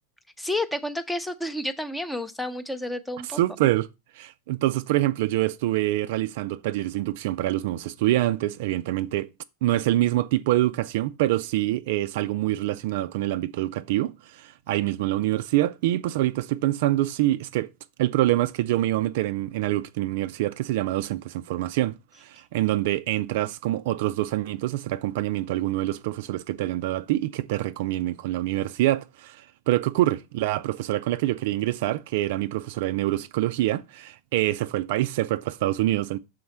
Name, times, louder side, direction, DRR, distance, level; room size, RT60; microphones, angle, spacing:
voice 1, 0.4-3.4, left 1 dB, 5° left, 0.6 m, -30 dB
voice 2, 3.3-3.9 4.1-9.3 9.6-17.7 18.0-36.2, right 15 dB, 50° right, 0.3 m, -25 dB
6.3 x 4.1 x 5.7 m
figure-of-eight pair, 90°, 0 cm